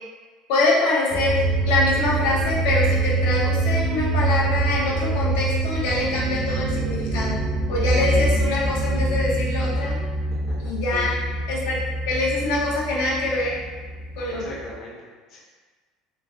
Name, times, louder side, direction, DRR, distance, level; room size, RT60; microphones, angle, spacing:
voice 1, 0.5-7.4 7.7-10.0 10.6-11.1 11.5-11.8 12.1-13.6 14.2-14.4, left 2 dB, 85° left, -4 dB, 0.7 m, -24 dB
sound 1, 1.1-14.7, right 2 dB, 30° right, 0.4 m, -25 dB
voice 2, 10.3-11.1 14.3-15.4, left 2 dB, 35° left, -5 dB, 0.5 m, -39 dB
3.1 x 2.4 x 2.5 m, 1.4 s
cardioid pair, 175°, 0 cm